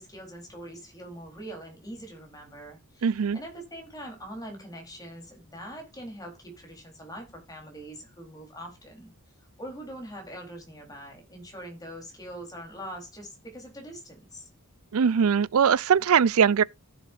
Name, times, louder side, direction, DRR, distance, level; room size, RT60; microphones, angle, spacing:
voice 1, 0.0-9.1 9.6-14.5, right 1 dB, 15° left, 3.9 m, -43 dB
voice 2, 3.0-3.4 14.9-16.6, right 7 dB, 80° right, 0.4 m, -21 dB
15.5 x 7.2 x 2.6 m
head